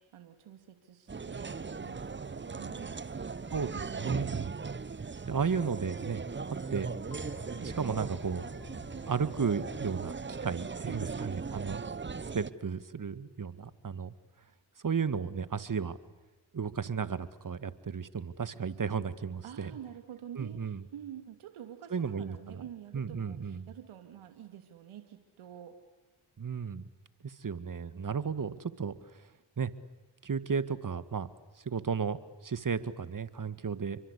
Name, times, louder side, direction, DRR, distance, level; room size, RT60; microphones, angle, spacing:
voice 1, 0.0-3.0 10.9-11.4 19.4-25.8, right 10 dB, 75° right, 6 dB, 2.7 m, -48 dB
sound 1, 1.1-12.5, right 4 dB, 25° right, 1.0 m, -38 dB
voice 2, 3.5-4.6 5.3-6.2 6.5-6.9 7.5-8.4 9.1-11.8 12.3-14.1 14.8-16.0 16.5-19.7 20.4-20.8 21.9-22.6 22.9-23.7 26.4-26.9 27.2-29.2 29.6-29.7 30.2-31.3 31.6-34.0, right 6 dB, 40° right, 13 dB, 2.0 m, -34 dB
sound 2, 7.1-11.3, left 4 dB, 60° left, 5.5 m, -52 dB
29.5 x 23.5 x 8.5 m, 1.2 s
supercardioid pair, 50°, 49 cm